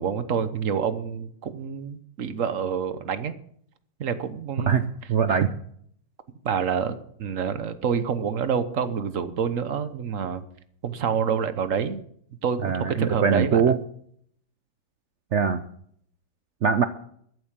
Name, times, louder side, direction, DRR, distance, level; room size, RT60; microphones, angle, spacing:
voice 1, 0.0-3.3 4.0-4.9 5.3-5.4 6.4-10.4 10.8-12.0 12.4-13.6, right 7 dB, 50° right, 12 dB, 1.1 m, -27 dB
voice 2, 5.1-5.5 12.6-13.8 15.3-15.6 16.6-16.9, right 7 dB, 80° right, 11 dB, 0.6 m, -21 dB
14.0 x 8.1 x 7.4 m, 0.64 s
omnidirectional pair, 2.1 m